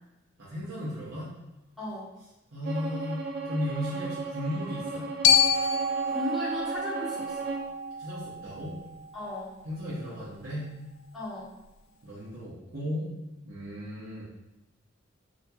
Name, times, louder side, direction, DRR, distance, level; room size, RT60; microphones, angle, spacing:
voice 1, 0.4-1.3 2.5-5.1 8.0-8.8 9.6-10.8 12.0-13.1 13.4-14.2, left 1 dB, 70° right, -11 dB, 0.9 m, -35 dB
voice 2, 1.8-2.1 6.1-7.5 9.1-9.5 11.1-11.5, left 1 dB, ahead, -11 dB, 1.3 m, -36 dB
Bowed string instrument, 2.6-7.7, right 3 dB, 50° right, 0.4 m, -36 dB
Glockenspiel, 5.2-9.4, left 5 dB, 65° left, 0.3 m, -27 dB
2.9 x 2.7 x 2.3 m, 0.96 s
head